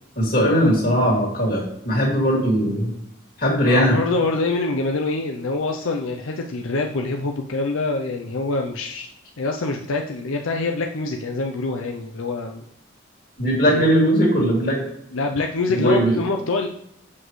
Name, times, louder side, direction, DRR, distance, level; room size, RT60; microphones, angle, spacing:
voice 1, 0.2-2.9 3.4-3.9 13.4-14.8 15.7-16.2, equal, 45° left, -2 dB, 2.5 m, -19 dB
voice 2, 3.7-9.1 9.4-12.6 13.6-13.8 15.1-16.7, left 3 dB, 80° left, 2 dB, 0.6 m, -25 dB
7.5 x 6.1 x 3.2 m, 0.74 s
head